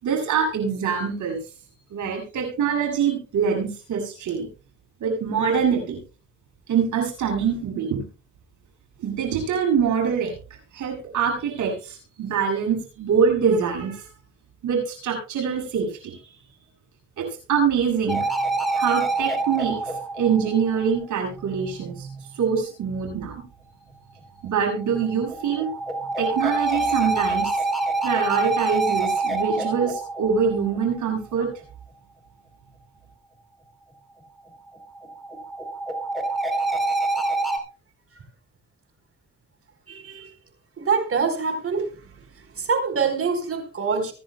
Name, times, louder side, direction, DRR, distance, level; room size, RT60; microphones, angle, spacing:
voice 1, 0.0-1.4 1.9-4.5 5.0-6.0 6.7-8.0 9.0-10.3 10.7-14.1 14.6-16.2 17.2-18.3 18.7-23.4 24.4-25.7 26.2-27.5 28.0-31.5, right 6 dB, 75° right, 2 dB, 7.7 m, -24 dB
sound 1, 18.1-21.1 24.7-31.1 34.7-37.6, right 3 dB, ahead, 3.8 m, -26 dB
voice 2, 39.9-40.3 40.8-41.9 42.6-44.1, right 5 dB, 45° right, 6 dB, 4.3 m, -25 dB
24.5 x 11.0 x 2.3 m, 0.35 s
cardioid pair, 90°, 30 cm